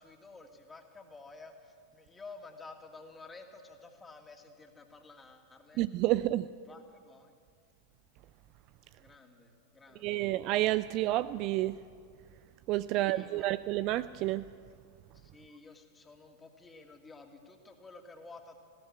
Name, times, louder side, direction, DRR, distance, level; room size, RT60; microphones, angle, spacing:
voice 1, 0.0-5.8 6.7-7.4 9.0-10.3 12.9-13.6 15.1-18.6, left 3 dB, 15° left, 2.5 m, -52 dB
voice 2, 5.8-6.5 10.0-11.8 12.7-14.5, right 16 dB, 40° right, 0.4 m, -30 dB
19.5 x 16.5 x 8.7 m
figure-of-eight pair, 90°, 0 cm